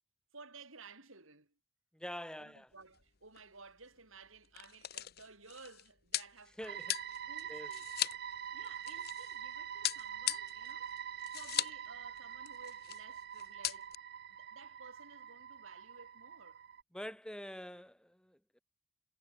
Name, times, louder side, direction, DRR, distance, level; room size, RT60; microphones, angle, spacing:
voice 1, 0.3-1.5 2.4-6.8 7.3-7.9 8.5-11.0 11.3-13.9 14.3-16.6, right 4 dB, 70° right, 6.5 m, -56 dB
voice 2, 1.9-2.7 6.6-6.9 7.5-7.7 16.9-18.6, equal, 5° left, 2.5 m, -46 dB
sound 1, 2.8-3.1 3.3-3.4 4.2-9.4 9.8-11.9 12.1-12.2 12.5-13.0 13.3-13.9, left 13 dB, 45° left, 1.3 m, -39 dB
sound 2, 6.7-16.8, right 9 dB, 45° right, 0.4 m, -45 dB
head